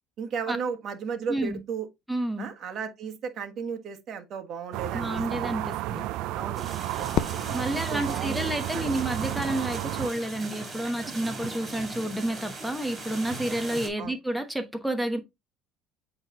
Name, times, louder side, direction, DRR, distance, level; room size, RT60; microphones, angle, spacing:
voice 1, 0.2-1.9 2.4-5.1 6.3-7.1 7.7-8.8 11.0-11.1 14.0-14.1, right 6 dB, 50° right, 1.4 m, -35 dB
voice 2, 1.3-1.6 2.1-2.5 4.9-6.0 7.5-15.2, right 1 dB, ahead, 1.1 m, -30 dB
sound 1, 4.7-10.1, right 16 dB, 70° right, 0.4 m, -32 dB
sound 2, 6.5-13.9, right 2 dB, 30° right, 2.7 m, -39 dB
Fireworks, 7.1-9.3, left 12 dB, 60° left, 0.4 m, -34 dB
8.1 x 3.4 x 3.6 m
supercardioid pair, 95°, 0 cm